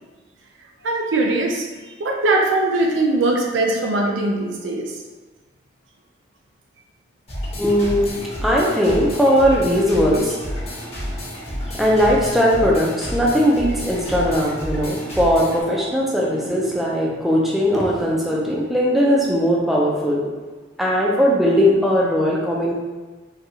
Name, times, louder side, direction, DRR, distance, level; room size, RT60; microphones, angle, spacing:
voice 1, 0.8-1.7 2.0-4.9, right 2 dB, 85° right, 0 dB, 0.5 m, -20 dB
sound 1, 7.3-15.6, equal, 35° left, 0.9 m, -30 dB
voice 2, 7.6-20.3 20.8-22.7, equal, ahead, -4 dB, 0.4 m, -19 dB
4.0 x 2.3 x 2.7 m, 1.3 s
head